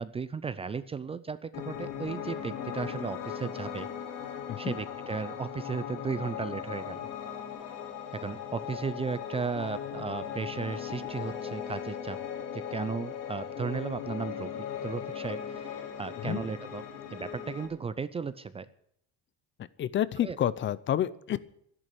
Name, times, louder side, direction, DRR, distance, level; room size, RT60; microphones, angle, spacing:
voice 1, 0.0-3.9 4.6-7.1 7.6-7.7 8.1-12.2 12.5-16.8 17.1-18.7 20.2-20.4, right 5 dB, 20° right, 15 dB, 0.5 m, -35 dB
Piano, 1.5-17.7, left 8 dB, 85° left, 4.0 m, -38 dB
voice 2, 19.8-21.4, left 11 dB, 35° left, 18 dB, 0.6 m, -29 dB
12.5 x 11.0 x 8.1 m, 0.71 s
cardioid pair, 155°, 32 cm